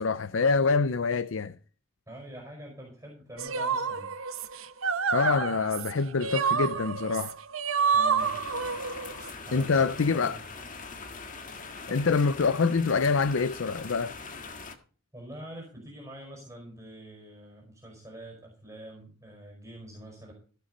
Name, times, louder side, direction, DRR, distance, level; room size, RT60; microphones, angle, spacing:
voice 1, 0.0-1.6 5.1-7.4 9.5-10.4 11.9-14.1, left 4 dB, 70° left, 0.6 m, -25 dB
voice 2, 2.1-4.1 7.9-8.4 9.5-10.4 11.9-12.1 15.1-20.3, right 1 dB, 15° right, 5.1 m, -45 dB
sound 1, 3.4-9.3, right 6 dB, 85° right, 0.9 m, -28 dB
sound 2, 8.2-14.8, left 4 dB, 40° left, 1.6 m, -42 dB
15.5 x 6.9 x 5.2 m
head